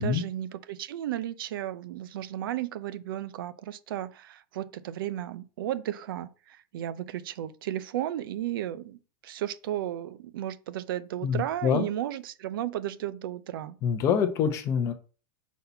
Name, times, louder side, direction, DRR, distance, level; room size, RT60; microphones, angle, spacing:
voice 1, 0.0-9.0 9.2-13.8, right 12 dB, 60° right, 0.7 m, -34 dB
voice 2, 11.2-11.8 13.8-14.9, left 7 dB, 25° left, 0.9 m, -25 dB
5.7 x 4.2 x 5.7 m
supercardioid pair, 170°, 13 cm